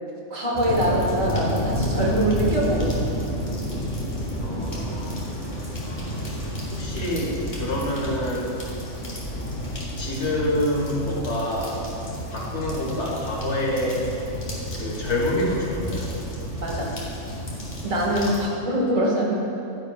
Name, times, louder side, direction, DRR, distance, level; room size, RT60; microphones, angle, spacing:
voice 1, 0.3-3.0 16.6-17.0 17.8-19.4, right 1 dB, 75° right, -3 dB, 2.1 m, -23 dB
sound 1, 0.5-18.4, equal, 35° left, 2.0 m, -30 dB
voice 2, 4.4-6.2 6.7-8.5 10.0-11.8 12.3-14.1 14.7-16.1 18.3-18.5, left 1 dB, 60° left, -3 dB, 1.8 m, -27 dB
11.5 x 10.0 x 2.4 m, 2.8 s
omnidirectional pair, 1.4 m